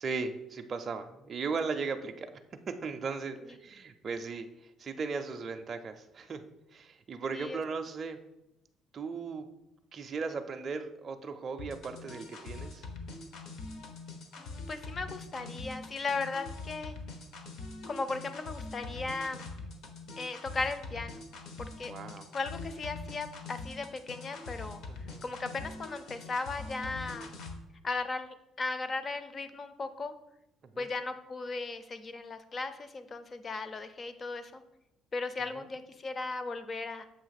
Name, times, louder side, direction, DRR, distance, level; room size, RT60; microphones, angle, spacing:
voice 1, 0.0-2.3 2.7-4.5 4.8-6.4 6.7-8.2 8.9-9.5 9.9-12.8 21.9-22.3 24.9-25.2 30.7-30.9 35.5-35.7, right 4 dB, 30° right, 5 dB, 0.4 m, -37 dB
sound 1, 11.6-27.6, left 3 dB, 65° left, 0.9 m, -43 dB
voice 2, 14.4-16.9 17.9-19.5 20.2-21.3 21.6-21.9 22.3-24.8 25.2-27.3 27.8-30.1 30.8-34.6 35.1-37.0, left 3 dB, 25° left, 11 dB, 0.5 m, -37 dB
7.0 x 2.9 x 5.7 m, 0.88 s
cardioid pair, 150°, 0 cm